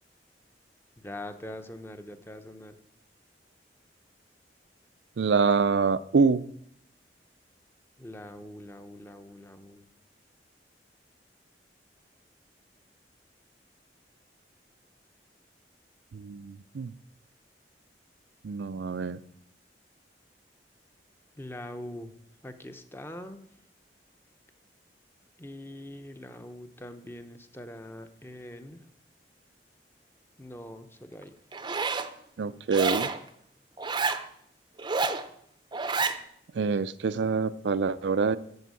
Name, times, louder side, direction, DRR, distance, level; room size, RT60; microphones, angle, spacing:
voice 1, 1.0-2.8 8.0-9.8 21.4-22.1 22.4-23.4 25.4-28.8 30.4-31.3, left 1 dB, 15° left, 8 dB, 0.7 m, -43 dB
voice 2, 5.2-6.4 16.1-16.9 18.4-19.2 32.4-33.1 36.5-38.4, right 5 dB, 80° right, 14 dB, 0.4 m, -26 dB
Zipper (clothing), 31.5-32.1 32.7-33.2 33.8-34.2 34.8-35.2 35.7-36.2, right 4 dB, 25° right, 0.6 m, -28 dB
13.5 x 4.5 x 8.2 m, 0.70 s
head